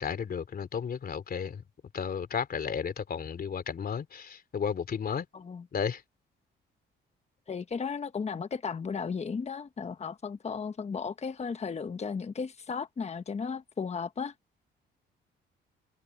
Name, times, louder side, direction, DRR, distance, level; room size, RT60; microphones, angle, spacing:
voice 1, 0.0-1.6 1.9-5.3 5.7-6.0, left 7 dB, 50° left, 3.4 m, -33 dB
voice 2, 5.3-5.6 7.5-14.3, left 5 dB, 35° left, 1.2 m, -35 dB
cardioid pair, 90°, 20 cm